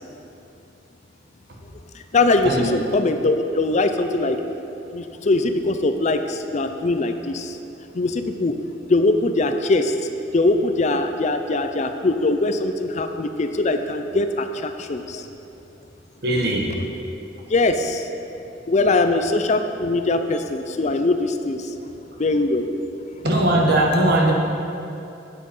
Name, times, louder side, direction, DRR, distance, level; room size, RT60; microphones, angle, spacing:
voice 1, 1.9-4.4 4.9-7.6 7.9-8.5 8.9-9.9 10.3-15.3 17.5-18.1 18.7-21.7 22.2-22.6, left 2 dB, 40° left, 7 dB, 0.5 m, -21 dB
voice 2, 16.2-16.7 23.2-24.3, right 1 dB, 60° right, -1 dB, 1.5 m, -19 dB
8.7 x 8.5 x 5.4 m, 2.8 s
head